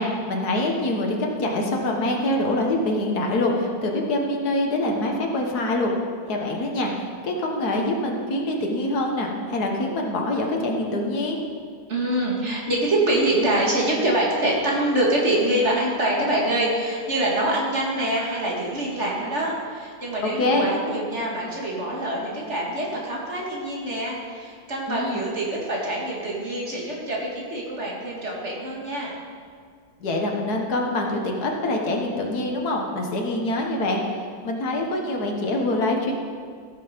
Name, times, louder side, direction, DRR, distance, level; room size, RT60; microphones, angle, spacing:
voice 1, 0.0-5.9 6.3-11.4 20.2-20.7 24.9-25.2 30.0-34.1 34.4-36.1, left 1 dB, 80° left, 1 dB, 1.9 m, -25 dB
voice 2, 11.9-29.1, right 1 dB, 45° right, -3 dB, 2.4 m, -25 dB
15.5 x 6.9 x 5.3 m, 2.1 s
omnidirectional pair, 1.7 m